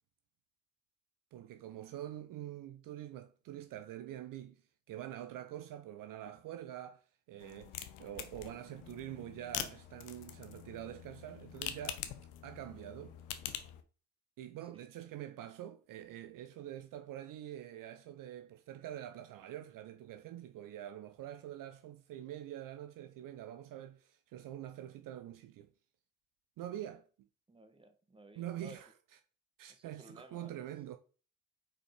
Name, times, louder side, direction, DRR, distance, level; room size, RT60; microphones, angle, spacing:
voice 1, 1.3-4.6 4.9-12.0 12.4-13.2 14.4-25.7 26.6-27.3 28.3-28.9 29.6-31.0, right 12 dB, 60° right, 0.6 m, -45 dB
sound 1, 7.4-13.8, left 11 dB, 75° left, 0.8 m, -45 dB
voice 2, 27.5-28.8 29.7-30.6, right 1 dB, 15° right, 1.3 m, -56 dB
4.9 x 4.4 x 4.7 m
hypercardioid pair, 55°, 37 cm